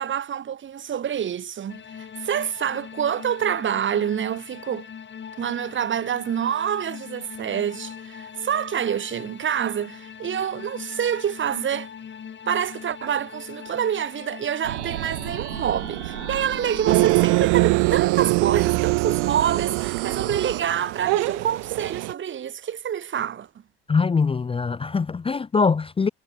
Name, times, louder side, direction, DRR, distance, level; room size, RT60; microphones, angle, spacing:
voice 1, 0.0-4.9 5.4-11.9 12.5-23.5, right 9 dB, 35° right, 2.2 m, -27 dB
sound 1, 1.7-17.4, left 7 dB, 30° left, 7.2 m, -41 dB
sound 2, 14.6-20.6, right 17 dB, 80° right, 3.8 m, -33 dB
sound 3, 16.9-22.1, right 26 dB, 60° right, 1.6 m, -22 dB
voice 2, 23.9-26.1, left 5 dB, 15° left, 0.9 m, -22 dB
hypercardioid pair, 85°, 34 cm